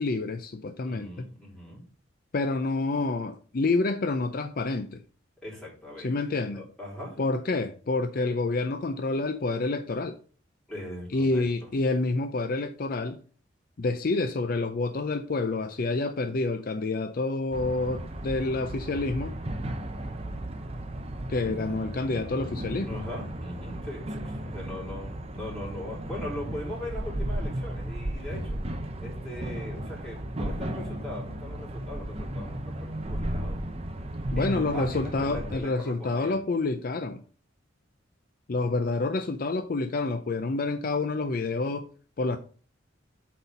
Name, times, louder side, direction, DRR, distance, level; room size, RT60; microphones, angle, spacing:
voice 1, 0.0-1.1 2.3-5.0 6.0-6.6 7.2-10.2 11.1-13.2 13.8-19.3 21.3-23.0 34.3-37.2 38.5-41.9 42.2-42.4, left 3 dB, 45° left, 0.5 m, -28 dB
voice 2, 0.8-1.8 5.4-6.1 6.4-7.2 10.7-11.7 22.9-28.6 29.0-33.6 34.3-36.4, left 1 dB, ahead, 3.7 m, -40 dB
sound 1, 17.5-35.6, right 1 dB, 30° right, 0.7 m, -35 dB
8.0 x 4.3 x 5.3 m
head